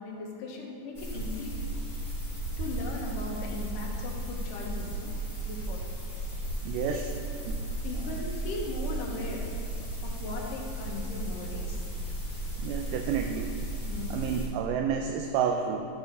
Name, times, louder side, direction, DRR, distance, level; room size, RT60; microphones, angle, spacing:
voice 1, 0.0-1.5 2.6-5.1 5.5-5.9 6.9-7.1 7.8-9.5 10.0-11.9 12.2-12.3 13.9-14.2, left 3 dB, 75° left, -1 dB, 2.7 m, -38 dB
sound 1, 0.9-14.5, right 1 dB, 15° left, 1.5 m, -35 dB
voice 2, 6.6-7.1 7.5-7.6 8.0-8.2 12.6-13.5 14.1-15.9, right 7 dB, 80° right, 4 dB, 2.1 m, -30 dB
12.0 x 8.7 x 3.4 m, 2.5 s
omnidirectional pair, 4.0 m